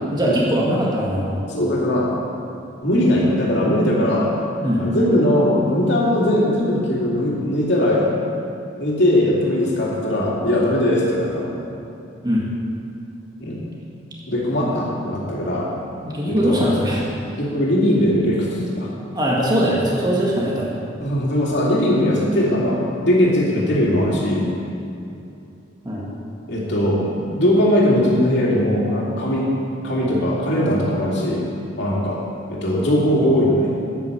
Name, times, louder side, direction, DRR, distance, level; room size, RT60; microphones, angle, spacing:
voice 1, 0.1-1.4 4.6-4.9 12.2-12.4 14.6-14.7 16.0-17.0 19.1-20.7 25.9-26.1, equal, 20° right, -4 dB, 1.7 m, -21 dB
voice 2, 1.5-2.1 2.8-4.3 4.8-8.1 8.8-11.5 13.4-13.7 14.3-15.7 16.2-16.6 17.4-18.9 21.0-24.5 26.5-29.5 29.8-31.5 31.8-32.2 32.5-33.7, left 1 dB, 65° left, -4 dB, 2.8 m, -19 dB
9.7 x 8.8 x 6.9 m, 2.7 s
head